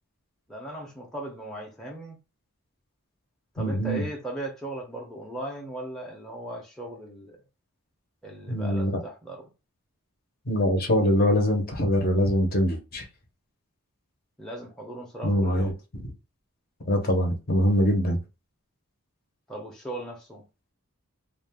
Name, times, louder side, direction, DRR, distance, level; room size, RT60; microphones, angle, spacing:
voice 1, 0.5-2.2 3.5-7.4 8.2-9.5 14.4-15.7 19.5-20.4, right 1 dB, ahead, 0.6 m, -37 dB
voice 2, 3.6-4.1 8.5-8.9 10.5-13.1 15.2-15.7 16.8-18.2, equal, 45° left, 0.7 m, -23 dB
2.5 x 2.2 x 3.4 m
head